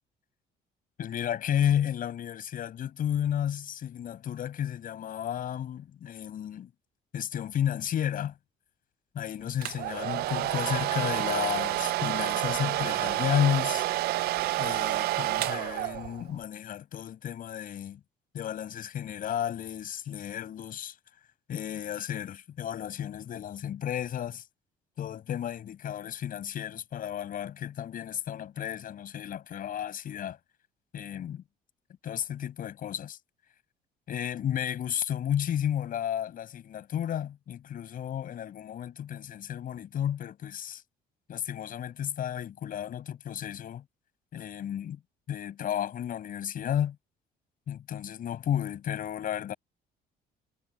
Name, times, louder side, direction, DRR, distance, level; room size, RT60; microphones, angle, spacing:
voice 1, 1.0-6.7 7.1-8.3 9.1-13.9 14.5-18.0 18.3-21.0 21.5-24.4 25.0-30.4 30.9-31.4 32.0-33.2 34.1-40.8 41.3-43.8 44.3-45.0 45.3-47.0 47.7-49.6, left 10 dB, 55° left, 6.4 m, -32 dB
Domestic sounds home sounds, 9.6-16.3, right 16 dB, 65° right, 0.5 m, -29 dB
cardioid pair, 110°, 17 cm